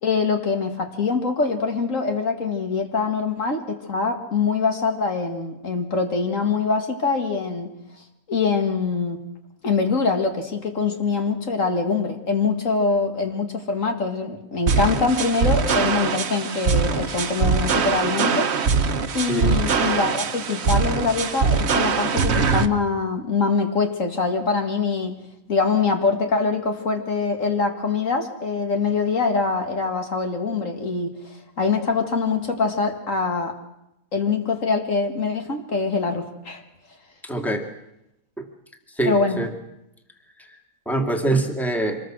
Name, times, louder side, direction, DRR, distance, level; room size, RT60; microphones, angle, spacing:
voice 1, 0.0-7.7 8.3-9.2 9.6-18.5 19.1-25.2 25.5-33.5 34.1-36.6 39.1-39.4, left 4 dB, 65° left, 4 dB, 2.4 m, -24 dB
sound 1, 14.7-22.7, right 5 dB, 50° right, 1.2 m, -22 dB
voice 2, 37.2-37.7 38.4-38.5 39.0-39.5 40.4-40.5 40.9-42.0, right 2 dB, ahead, 3 dB, 2.3 m, -24 dB
25.5 x 21.0 x 6.3 m, 0.86 s
omnidirectional pair, 1.5 m